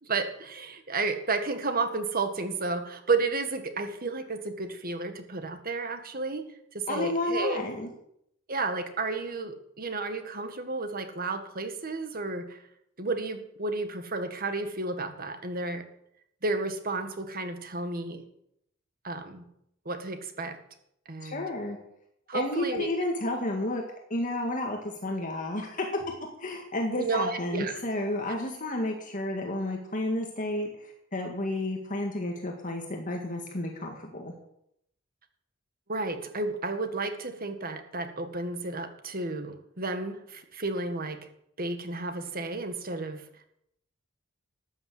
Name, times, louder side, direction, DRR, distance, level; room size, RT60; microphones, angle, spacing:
voice 1, 0.0-6.4 6.7-7.6 8.5-12.6 13.0-15.9 16.4-18.2 19.0-19.4 19.9-20.6 21.1-21.5 22.3-22.9 26.9-27.8 35.9-41.2 41.6-43.2, right 3 dB, 45° right, 7 dB, 1.8 m, -32 dB
voice 2, 6.9-7.9 21.2-21.8 22.3-23.8 24.1-26.0 26.4-34.3, left 1 dB, 40° left, 1 dB, 2.0 m, -31 dB
13.5 x 9.4 x 7.8 m, 0.74 s
head